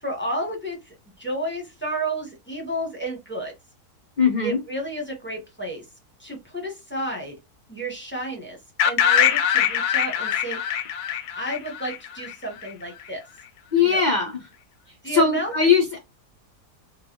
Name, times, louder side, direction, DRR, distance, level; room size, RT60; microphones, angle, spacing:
voice 1, 0.0-3.5 4.4-5.8 6.2-7.3 7.7-8.6 8.8-10.6 11.4-13.2 13.8-14.0 15.0-15.5, right 1 dB, 10° left, 1 dB, 0.7 m, -31 dB
voice 2, 4.2-4.6 13.7-14.4 15.0-16.0, left 5 dB, 55° left, 1 dB, 0.5 m, -20 dB
sound 1, 8.8-12.7, left 9 dB, 80° left, 1.1 m, -23 dB
3.8 x 2.2 x 2.8 m, 0.22 s
omnidirectional pair, 1.7 m